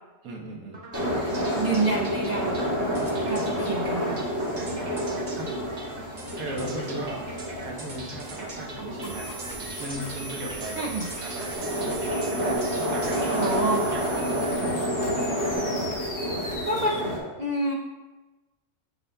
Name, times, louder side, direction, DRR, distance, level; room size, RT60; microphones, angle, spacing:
voice 1, 0.2-0.8 4.5-4.9 5.3-5.5 6.4-7.2 7.6-9.3 9.8-11.6 12.8-13.4 13.9-14.3, right 1 dB, 80° right, -1 dB, 1.5 m, -37 dB
sound 1, 0.7-14.8, right 2 dB, 40° right, 0.8 m, -42 dB
sound 2, 0.9-17.2, equal, 15° right, 1.5 m, -29 dB
voice 2, 1.5-2.6 3.3-4.2 10.7-11.1 13.3-13.9 16.7-17.0 17.4-17.7, right 2 dB, 65° right, -2 dB, 0.4 m, -27 dB
sound 3, 9.0-17.0, right 1 dB, 15° left, 0.7 m, -38 dB
7.3 x 6.6 x 2.3 m, 1.2 s
omnidirectional pair, 1.5 m